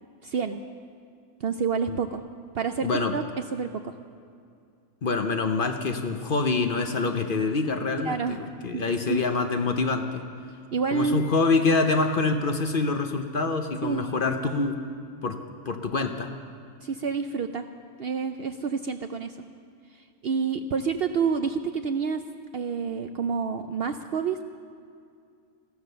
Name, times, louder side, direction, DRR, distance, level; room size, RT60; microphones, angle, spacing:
voice 1, 0.2-0.6 1.4-2.2 2.5-3.2 3.5-3.9 8.0-8.4 8.7-8.8 9.1-9.2 10.7-11.3 13.8-14.1 16.8-17.7 18.0-19.4 19.9-22.2 22.5-24.4, right 5 dB, 60° right, 8 dB, 0.6 m, -28 dB
voice 2, 2.8-3.2 5.0-10.2 10.9-14.8 15.2-15.4 15.7-16.3, left 3 dB, 45° left, 6 dB, 0.8 m, -25 dB
15.5 x 13.0 x 6.7 m, 2.3 s
omnidirectional pair, 1.4 m